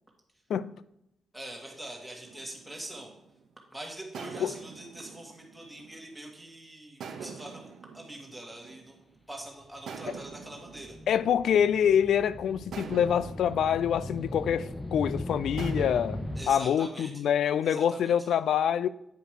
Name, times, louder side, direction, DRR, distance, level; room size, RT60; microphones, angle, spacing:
voice 1, 1.3-3.1 3.7-9.0 9.3-11.0 16.4-17.1 17.6-18.3, right 1 dB, 5° right, 1.6 m, -43 dB
sound 1, 2.2-3.5 4.1-6.4 7.0-9.2 9.9-12.1 12.7-15.0 15.6-17.2, right 6 dB, 75° right, 0.9 m, -45 dB
sound 2, 9.9-16.5, left 1 dB, 15° left, 0.6 m, -38 dB
voice 2, 11.1-16.2 16.5-18.9, left 9 dB, 75° left, 0.3 m, -26 dB
9.1 x 5.1 x 4.8 m
wide cardioid pair, 155°, 0 cm